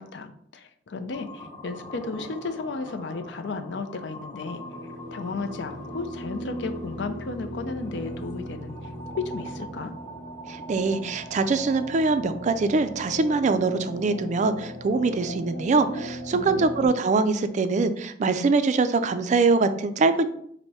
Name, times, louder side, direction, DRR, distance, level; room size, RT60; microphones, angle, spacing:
voice 1, 0.0-4.6 5.1-8.8 9.2-9.9 16.3-16.9, left 4 dB, 70° left, 9 dB, 0.5 m, -34 dB
sound 1, 1.1-15.1, equal, 20° left, 0.9 m, -44 dB
sound 2, 4.5-16.9, equal, 40° left, 1.0 m, -39 dB
voice 2, 10.5-20.3, right 3 dB, 40° right, 10 dB, 0.3 m, -23 dB
5.2 x 2.1 x 4.7 m, 0.68 s
head